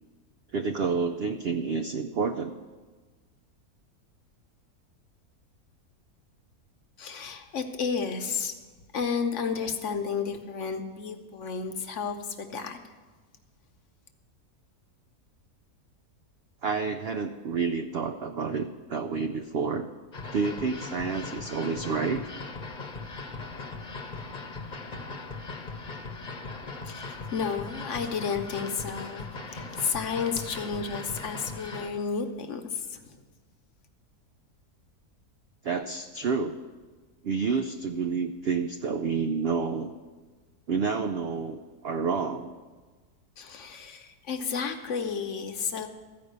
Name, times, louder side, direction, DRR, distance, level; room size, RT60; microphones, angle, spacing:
voice 1, 0.5-2.5 16.6-19.9 20.3-22.3 35.6-36.5 37.2-39.9 40.7-42.5, right 5 dB, 85° right, 7 dB, 0.5 m, -29 dB
voice 2, 7.0-8.5 8.9-12.9 26.8-33.2 43.4-45.9, left 5 dB, 60° left, 6 dB, 1.1 m, -32 dB
sound 1, 20.1-31.9, left 3 dB, 35° left, 1.0 m, -39 dB
14.0 x 5.2 x 8.0 m, 1.4 s
omnidirectional pair, 1.6 m